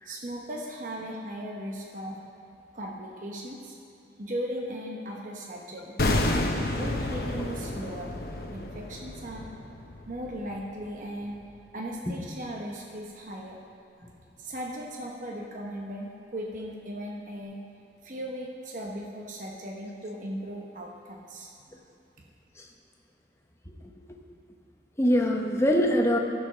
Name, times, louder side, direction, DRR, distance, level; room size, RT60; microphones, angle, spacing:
voice 1, 0.0-2.2 2.7-3.8 4.2-5.9 6.7-8.1 8.5-9.5 10.1-11.4 11.7-13.6 14.4-17.6 18.0-21.5, equal, 45° right, -2 dB, 0.9 m, -37 dB
sound 1, 6.0-11.0 11.3-11.4, left 1 dB, 55° left, 0.9 m, -30 dB
voice 2, 25.0-26.2, equal, 15° left, 1 dB, 0.8 m, -24 dB
15.0 x 5.0 x 6.1 m, 2.5 s
head